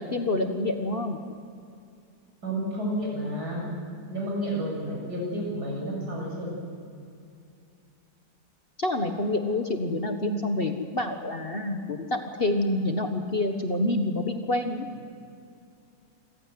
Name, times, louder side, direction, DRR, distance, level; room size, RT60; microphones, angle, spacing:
voice 1, 0.1-1.2 8.8-14.9, left 2 dB, 35° left, 5 dB, 1.4 m, -27 dB
voice 2, 2.4-3.6 4.1-6.5, equal, 75° right, -2 dB, 7.7 m, -31 dB
27.0 x 15.5 x 9.4 m, 2.5 s
omnidirectional pair, 1.8 m